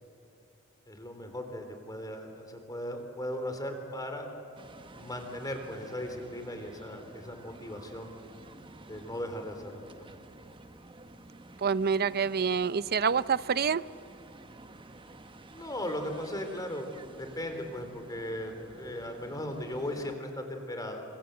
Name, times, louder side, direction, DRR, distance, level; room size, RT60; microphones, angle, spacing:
voice 1, 0.9-4.3 4.9-8.1 8.9-10.1 15.5-16.9 17.2-21.0, left 1 dB, 15° left, 5 dB, 3.6 m, -37 dB
sound 1, 4.6-20.2, right 2 dB, 25° right, 1.1 m, -51 dB
voice 2, 11.6-13.8, right 6 dB, 45° right, 17 dB, 0.6 m, -27 dB
29.0 x 26.0 x 7.9 m, 2.8 s
head